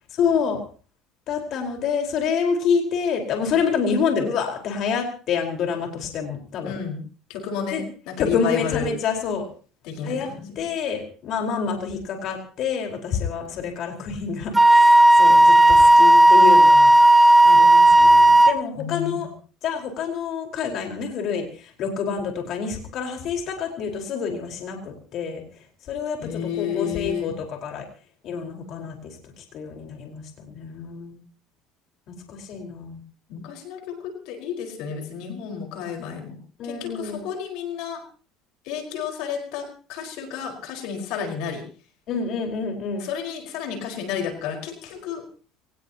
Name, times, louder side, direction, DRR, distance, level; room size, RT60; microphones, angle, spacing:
voice 1, 0.2-0.6 1.3-6.8 7.7-7.8 8.2-9.5 10.0-10.3 10.5-16.9 17.4-19.3 19.6-25.4 25.9-27.9 28.2-31.2 32.3-33.0 36.6-37.2 42.1-43.1, left 6 dB, 55° left, 3 dB, 4.6 m, -27 dB
voice 2, 6.6-7.0 7.3-8.9 9.9-10.3 18.8-19.3 26.2-27.3 33.3-36.4 36.6-38.0 38.7-41.6 43.0-45.2, left 7 dB, 75° left, 3 dB, 4.8 m, -31 dB
Wind instrument woodwind instrument, 14.5-18.5, right 1 dB, 10° right, 1.0 m, -12 dB
24.0 x 19.5 x 2.9 m, 0.37 s
supercardioid pair, 110°, 0 cm